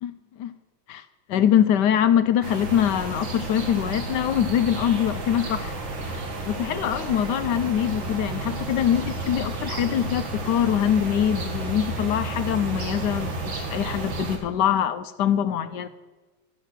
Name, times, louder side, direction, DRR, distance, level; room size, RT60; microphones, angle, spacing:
voice 1, 0.9-5.8 6.0-15.9, left 9 dB, 75° left, 1.1 m, -24 dB
sound 1, 2.4-14.4, right 2 dB, 75° right, 2.4 m, -32 dB
13.5 x 5.9 x 8.1 m
omnidirectional pair, 2.1 m